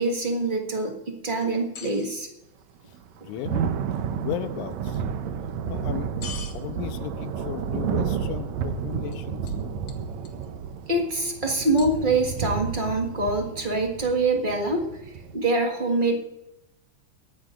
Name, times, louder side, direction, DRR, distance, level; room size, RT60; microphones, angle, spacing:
voice 1, 0.0-2.3 10.9-16.2, right 2 dB, 35° right, 2 dB, 0.8 m, -25 dB
sound 1, 1.4-2.1 4.9-5.0 6.2-6.6 9.1-9.2 9.5-9.6 9.9-10.5 11.8-12.4, left 6 dB, 65° left, 2.2 m, -41 dB
Thunder / Rain, 2.9-15.3, right 7 dB, 70° right, 1.9 m, -31 dB
voice 2, 3.3-3.7 4.2-5.0 5.7-6.1 6.5-9.5, left 11 dB, 90° left, 10 dB, 2.2 m, -35 dB
22.5 x 11.0 x 2.5 m, 0.93 s
omnidirectional pair, 3.5 m